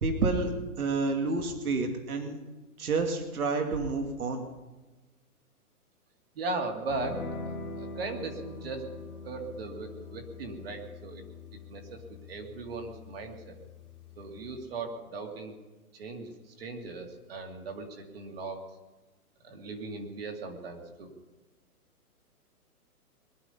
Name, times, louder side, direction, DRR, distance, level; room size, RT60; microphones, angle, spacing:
voice 1, 0.0-0.5 0.8-2.4 2.8-4.4, right 3 dB, 70° right, 5 dB, 2.5 m, -29 dB
voice 2, 6.3-7.4 7.8-8.9 9.2-11.2 11.7-13.5 14.2-15.5 15.9-18.6 19.4-21.1, right 3 dB, 40° right, 3 dB, 2.5 m, -38 dB
sound 1, 6.9-14.7, left 3 dB, ahead, 1.9 m, -43 dB
21.5 x 11.5 x 5.6 m, 1.2 s
hypercardioid pair, 170°, 45 cm